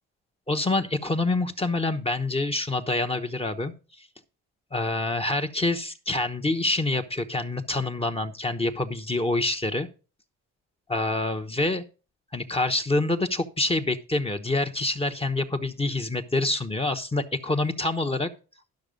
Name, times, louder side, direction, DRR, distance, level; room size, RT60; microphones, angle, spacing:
voice 1, 0.5-4.1 4.7-9.9 10.9-11.8 12.3-18.3, left 2 dB, 20° left, 5 dB, 1.0 m, -26 dB
12.0 x 6.0 x 5.2 m, 0.34 s
cardioid pair, 90°, 30 cm